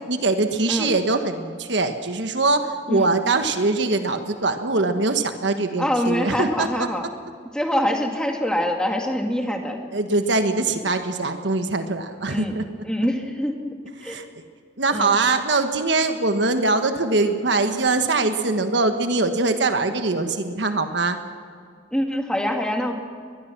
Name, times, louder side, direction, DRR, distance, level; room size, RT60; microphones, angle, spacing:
voice 1, 0.1-6.9 9.9-12.6 14.0-14.4 14.8-21.2, right 3 dB, 65° right, 7 dB, 1.4 m, -22 dB
voice 2, 5.8-7.1 7.5-9.8 12.3-12.5 12.8-13.6 14.0-14.2 14.9-15.1 21.9-22.9, equal, 5° left, 2 dB, 2.1 m, -24 dB
23.0 x 20.5 x 6.0 m, 2.1 s
head